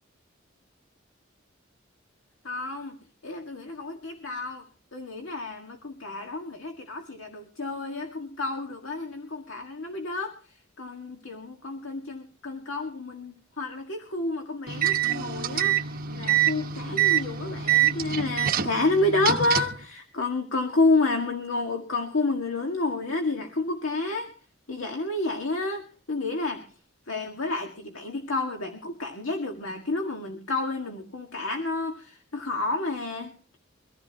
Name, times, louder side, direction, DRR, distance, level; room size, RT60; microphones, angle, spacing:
voice 1, 2.4-3.0 3.2-4.7 4.9-10.4 10.8-24.3 24.7-26.7 27.1-33.6, left 2 dB, 80° left, 3 dB, 1.9 m, -30 dB
sound 1, 14.7-19.8, right 11 dB, 50° right, 1.2 m, -25 dB
23.5 x 15.0 x 3.0 m, 0.35 s
head